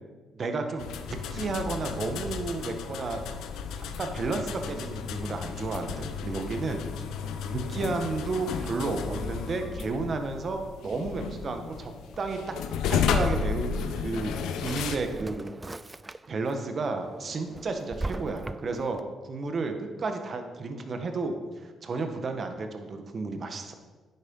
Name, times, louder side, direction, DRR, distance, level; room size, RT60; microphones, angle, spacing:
voice 1, 0.3-3.3 3.8-6.8 7.5-12.5 12.8-14.3 14.6-15.5 16.3-21.4 21.6-23.7, right 3 dB, 45° right, 6 dB, 1.6 m, -32 dB
sound 1, 0.8-15.0, left 6 dB, 85° left, 0.9 m, -33 dB
sound 2, 4.6-12.6, left 1 dB, 40° left, 3.6 m, -48 dB
Drawer open or close, 14.0-16.5 16.9-19.0, right 2 dB, 20° right, 0.4 m, -39 dB
10.5 x 8.8 x 5.6 m, 1.3 s
cardioid pair, 90°, 0 cm